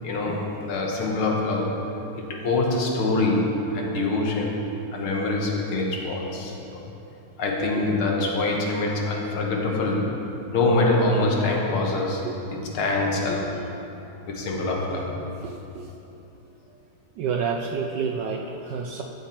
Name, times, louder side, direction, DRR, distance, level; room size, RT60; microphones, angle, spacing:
voice 1, 0.0-1.8 2.2-4.6 4.9-6.8 7.4-10.2 10.5-13.5 14.3-15.1, left 2 dB, 75° left, -1 dB, 2.1 m, -25 dB
voice 2, 15.4-15.9 17.2-19.0, right 6 dB, 75° right, 2 dB, 1.0 m, -29 dB
12.5 x 7.7 x 4.4 m, 2.9 s
omnidirectional pair, 2.4 m